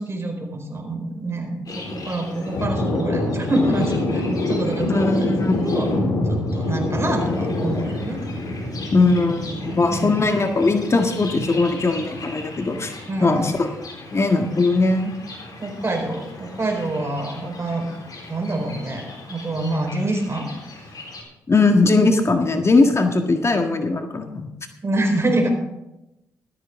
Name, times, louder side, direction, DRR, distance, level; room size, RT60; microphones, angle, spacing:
voice 1, 0.0-1.6 1.9-4.2 4.5-5.1 5.6-5.9 6.3-8.2 9.3-10.2 13.1-13.4 15.6-17.9 18.3-20.5 24.8-25.5, right 2 dB, 35° right, 4 dB, 4.4 m, -26 dB
Thunder, 1.7-21.2, left 2 dB, 55° left, 4.0 m, -28 dB
voice 2, 4.9-5.6 8.9-12.9 13.2-13.7 14.1-15.1 21.5-24.5, left 3 dB, 35° left, 5 dB, 1.6 m, -19 dB
14.5 x 13.5 x 3.7 m, 0.90 s
hypercardioid pair, 45°, 8 cm